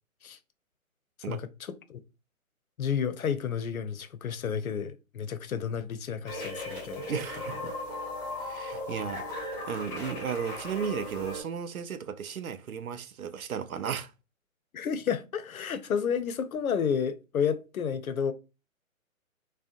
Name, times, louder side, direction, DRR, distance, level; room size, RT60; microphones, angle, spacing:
voice 1, 2.8-7.1 14.7-18.3, left 7 dB, 85° left, 0.5 m, -31 dB
sound 1, 6.3-11.4, left 1 dB, 15° left, 0.7 m, -37 dB
voice 2, 7.1-7.7 8.4-14.1, right 7 dB, 90° right, 0.5 m, -35 dB
2.6 x 2.1 x 2.5 m
figure-of-eight pair, 140°, 41 cm